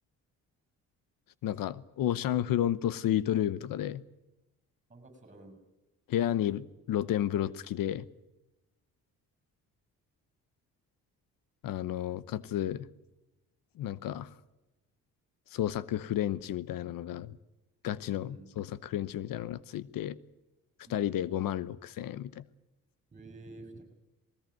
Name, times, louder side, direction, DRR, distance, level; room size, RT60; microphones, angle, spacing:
voice 1, 1.4-4.0 6.1-8.0 11.6-12.9 13.8-14.3 15.5-17.4 17.8-20.2 20.9-22.4, left 11 dB, 75° left, 18 dB, 0.9 m, -32 dB
voice 2, 4.9-5.6 18.0-18.5 20.9-21.3 23.1-23.8, right 2 dB, 20° right, 10 dB, 7.3 m, -50 dB
20.5 x 19.0 x 9.3 m, 1.0 s
cardioid pair, 95°, 34 cm